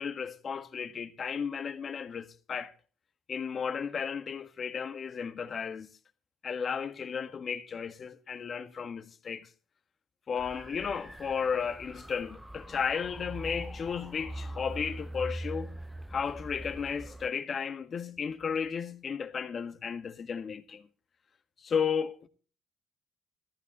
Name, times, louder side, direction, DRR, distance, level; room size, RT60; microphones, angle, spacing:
voice 1, 0.0-2.7 3.3-5.9 6.4-9.5 10.3-15.8 16.1-20.9 21.6-22.3, left 6 dB, 45° left, 1.5 m, -34 dB
sound 1, 10.4-17.3, right 1 dB, 5° right, 0.7 m, -42 dB
14.5 x 14.5 x 3.0 m
hypercardioid pair, 60°, 0 cm